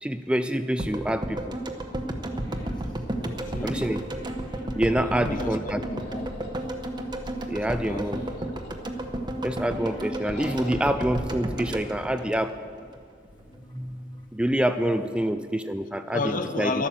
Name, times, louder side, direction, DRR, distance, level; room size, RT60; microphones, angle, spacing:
voice 1, 0.0-1.6 2.4-2.6 3.6-4.0 4.8-5.8 7.5-8.2 9.4-12.6 13.7-14.0 14.3-16.2 16.6-16.7, right 1 dB, 5° right, 9 dB, 0.3 m, -26 dB
sound 1, 0.8-13.0 13.3-13.4, right 1 dB, 25° right, 1.0 m, -32 dB
sound 2, 2.4-14.8, equal, 25° left, 1.6 m, -48 dB
voice 2, 3.2-3.9 5.0-6.3 7.2-8.3 15.0-15.1 16.1-16.9, left 3 dB, 45° left, 9 dB, 0.9 m, -33 dB
sound 3, 6.0-7.3 8.0-9.1 10.2-11.0, left 3 dB, 65° left, 3.4 m, -46 dB
12.0 x 11.5 x 7.3 m, 2.2 s
head